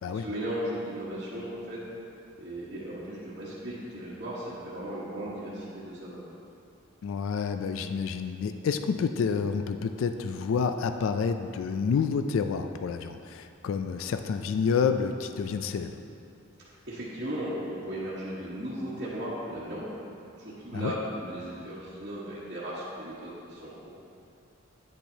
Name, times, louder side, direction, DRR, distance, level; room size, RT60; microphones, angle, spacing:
voice 1, 0.1-1.8 2.4-6.2 16.9-19.9 20.4-23.9, right 1 dB, 50° right, -11 dB, 1.2 m, -36 dB
voice 2, 7.0-16.0 20.7-20.9, left 6 dB, 70° left, 8 dB, 0.3 m, -29 dB
9.7 x 7.2 x 2.7 m, 2.6 s
head